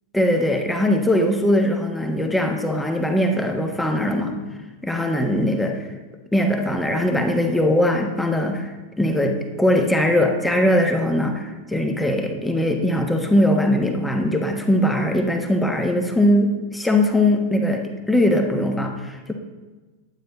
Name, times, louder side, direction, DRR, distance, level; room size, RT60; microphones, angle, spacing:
voice 1, 0.1-4.4 4.8-5.9 6.3-8.7 9.0-19.3, left 1 dB, 5° left, 4 dB, 1.3 m, -20 dB
11.5 x 9.1 x 4.1 m, 1.3 s
figure-of-eight pair, 90°, 0 cm